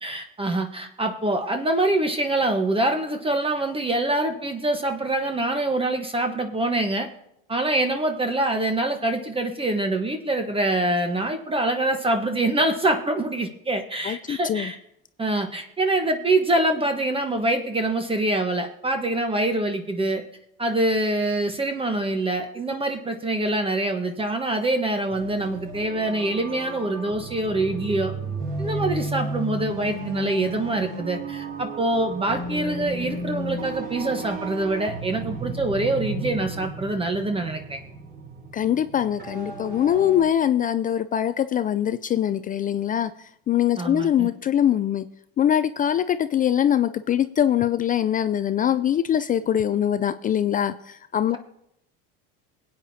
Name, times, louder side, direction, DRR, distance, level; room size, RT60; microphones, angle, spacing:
voice 1, 0.0-7.1 7.5-14.8 15.2-20.2 20.6-28.1 28.6-37.8 43.8-44.3, right 2 dB, 20° right, 5 dB, 1.1 m, -25 dB
voice 2, 14.0-14.7 38.5-45.1 45.4-51.4, left 10 dB, 30° left, 13 dB, 0.4 m, -23 dB
sound 1, 25.1-40.2, right 2 dB, 35° right, 3.7 m, -34 dB
21.5 x 8.6 x 2.8 m, 0.78 s
hypercardioid pair, 85°, 29 cm